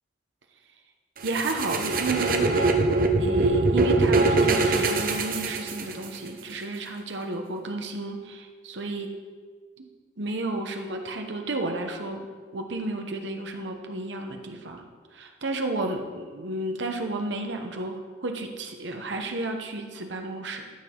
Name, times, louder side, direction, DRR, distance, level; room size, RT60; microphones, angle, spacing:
sound 1, 1.2-6.2, right 3 dB, 50° right, 0.7 m, -23 dB
voice 1, 1.2-2.8 3.2-9.1 9.8-9.9 10.2-12.3 12.5-14.8 15.1-20.6, right 2 dB, 80° right, 4 dB, 1.0 m, -32 dB
12.0 x 6.2 x 3.8 m, 1.5 s
head